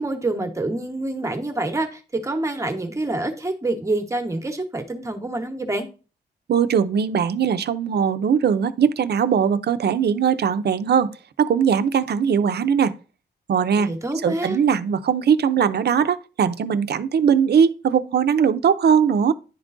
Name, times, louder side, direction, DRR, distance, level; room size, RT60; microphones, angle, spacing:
voice 1, 0.0-5.9 13.8-14.6, right 2 dB, 15° right, 1.0 m, -27 dB
voice 2, 6.5-11.1 11.4-12.9 13.5-19.3, right 7 dB, 70° right, 0.6 m, -20 dB
11.0 x 3.7 x 2.5 m
wide cardioid pair, 175°, 18 cm